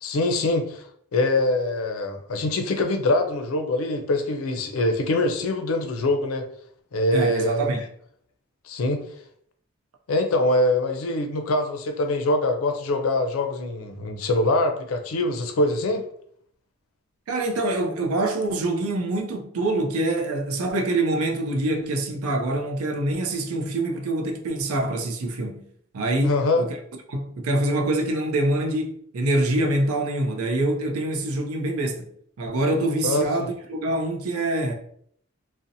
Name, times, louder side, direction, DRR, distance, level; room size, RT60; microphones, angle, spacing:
voice 1, 0.0-0.8 1.1-6.4 6.9-7.7 8.7-9.0 10.1-16.0 26.2-26.6 33.0-33.5, left 2 dB, 85° left, 0.4 m, -24 dB
voice 2, 7.1-7.8 17.3-25.6 25.9-26.8 27.1-32.1 32.4-34.7, right 2 dB, 90° right, 0.5 m, -25 dB
2.6 x 2.0 x 2.5 m
head